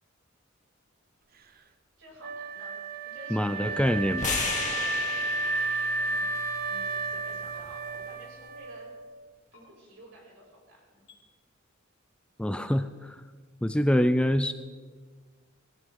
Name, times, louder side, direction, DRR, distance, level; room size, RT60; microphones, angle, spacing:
voice 1, 2.0-2.8 3.0-4.2 6.0-8.9 9.5-11.0, right 1 dB, 65° right, -3 dB, 6.5 m, -51 dB
Wind instrument woodwind instrument, 2.2-9.2, right 3 dB, 45° right, 0.8 m, -32 dB
voice 2, 3.3-4.4 12.4-13.2 13.6-14.5, equal, 5° left, 10 dB, 0.4 m, -25 dB
sound 1, 4.2-8.4, left 4 dB, 35° left, 2.4 m, -36 dB
sound 2, 5.5-5.7 7.5-7.6 9.5-9.6 11.1-11.2, left 5 dB, 60° left, 4.8 m, -56 dB
19.0 x 17.5 x 3.7 m, 1.4 s
head